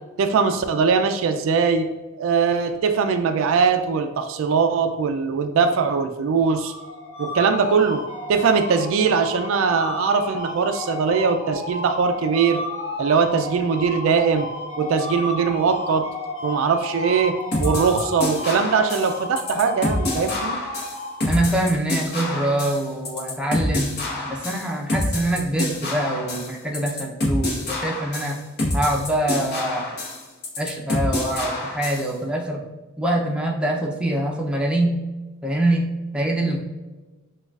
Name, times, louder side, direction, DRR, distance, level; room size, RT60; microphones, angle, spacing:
voice 1, 0.2-1.9 2.2-6.7 7.2-8.0 8.3-12.6 13.0-14.5 14.8-16.0 16.4-20.6, right 5 dB, 65° right, 7 dB, 0.3 m, -21 dB
sound 1, 6.4-21.7, left 2 dB, 75° left, 1.0 m, -33 dB
sound 2, 17.5-32.1, left 1 dB, 50° left, 1.1 m, -27 dB
voice 2, 21.2-23.9 24.3-28.4 28.7-29.9 30.6-32.6 33.0-35.0 35.4-36.6, right 1 dB, 5° right, -1 dB, 0.5 m, -24 dB
6.2 x 2.3 x 2.3 m, 1.2 s
head